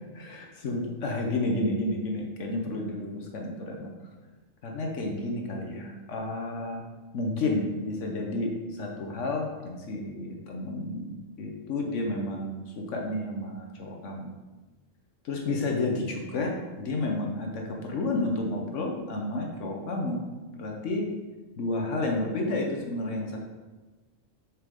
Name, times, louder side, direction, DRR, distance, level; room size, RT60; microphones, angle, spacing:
voice 1, 0.1-3.9 4.6-6.8 7.1-11.1 11.4-14.3 15.2-20.2 20.6-21.1 21.6-23.4, left 2 dB, 70° left, 1 dB, 1.2 m, -31 dB
6.7 x 4.6 x 3.5 m, 1.2 s
omnidirectional pair, 1.3 m